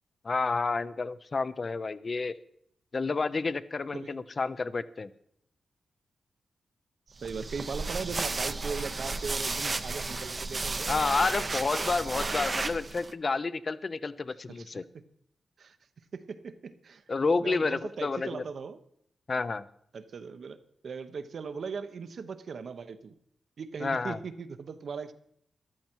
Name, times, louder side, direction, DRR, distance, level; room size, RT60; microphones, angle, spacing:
voice 1, 0.2-2.4 2.9-5.1 10.9-14.8 17.1-18.4 19.3-19.6 23.8-24.2, left 4 dB, 40° left, 16 dB, 0.5 m, -30 dB
voice 2, 7.1-11.0 14.5-14.7 15.6-15.8 16.1-17.0 17.4-18.8 19.9-23.1 23.6-25.1, right 5 dB, 60° right, 11 dB, 0.8 m, -39 dB
sound 1, 7.2-13.1, right 3 dB, 30° right, 0.6 m, -33 dB
13.5 x 12.0 x 4.5 m, 0.70 s
wide cardioid pair, 115°, 0 cm